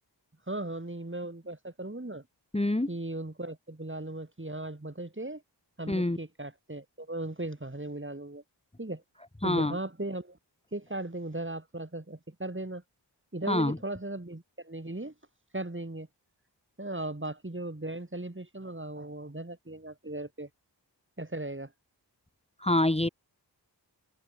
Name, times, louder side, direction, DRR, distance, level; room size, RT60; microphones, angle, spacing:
voice 1, 0.5-2.2 2.9-5.4 5.8-8.4 8.8-9.0 9.4-10.4 10.7-12.8 13.3-15.1 15.5-16.1 16.8-20.5 21.2-21.7, right 2 dB, 25° right, 7.6 m, -37 dB
voice 2, 2.5-2.9 5.9-6.2 9.4-9.8 13.5-13.8 22.6-23.1, left 1 dB, 15° left, 1.6 m, -26 dB
wide cardioid pair, 50°, 43 cm